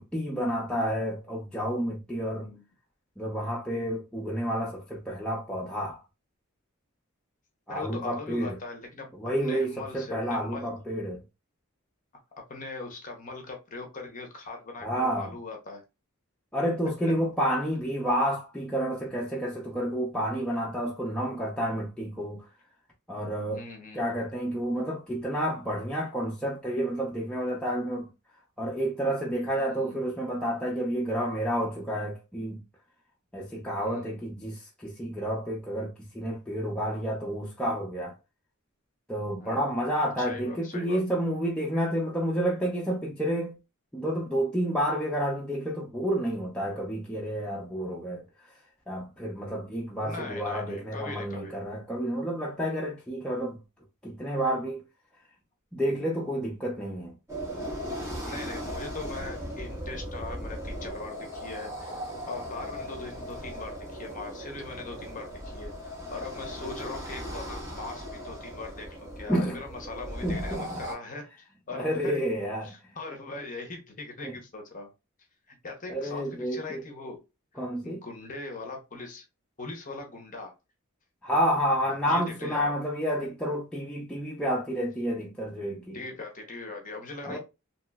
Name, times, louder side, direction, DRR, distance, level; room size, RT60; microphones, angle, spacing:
voice 1, 0.0-2.5 3.2-6.0 7.7-8.6 9.1-11.2 14.8-15.3 16.5-22.4 23.1-23.6 23.9-28.1 28.6-32.6 33.3-38.2 39.1-43.5 43.9-48.2 48.9-53.6 54.0-54.8 55.7-57.1 69.3-69.6 70.2-70.8 71.7-72.7 74.2-74.3 75.9-76.8 77.6-78.0 81.2-86.0 87.2-87.4, equal, 5° left, 0.4 m, -30 dB
voice 2, 2.3-2.6 7.7-9.1 9.4-10.7 12.5-15.8 23.5-24.1 29.7-30.0 33.8-34.2 39.4-39.7 40.2-41.0 50.0-51.6 58.2-62.0 62.3-71.2 71.7-72.2 72.6-74.9 75.5-77.2 77.5-79.2 79.6-80.6 82.1-82.8 85.9-87.4, left 3 dB, 35° left, 0.7 m, -40 dB
sound 1, 57.3-71.0, equal, 15° right, 0.9 m, -38 dB
2.9 x 2.9 x 2.2 m
head